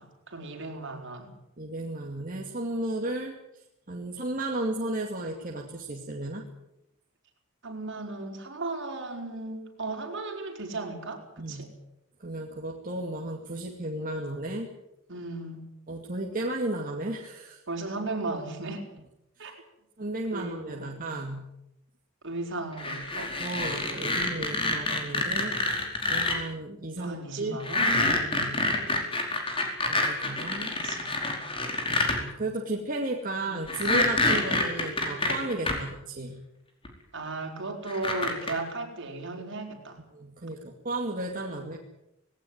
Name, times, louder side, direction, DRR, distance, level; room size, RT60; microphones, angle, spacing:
voice 1, 0.0-1.4 7.6-11.7 15.1-15.6 17.7-18.9 19.4-19.6 20.3-21.2 22.2-23.4 27.0-28.6 30.7-31.1 33.4-33.8 37.1-40.0 41.5-41.6, right 2 dB, 60° right, 2 dB, 5.0 m, -36 dB
voice 2, 1.6-3.3 3.9-6.4 11.4-11.7 12.2-14.7 15.9-17.6 19.4-19.5 20.0-21.4 23.4-25.6 26.1-27.6 29.9-30.7 32.1-36.4 40.1-41.8, right 2 dB, 40° right, 0 dB, 2.4 m, -34 dB
sound 1, 22.8-26.4 27.6-32.2 33.7-35.7 36.9-37.0 37.9-38.5, left 2 dB, 25° left, 4.9 m, -27 dB
19.5 x 18.0 x 9.4 m, 0.86 s
head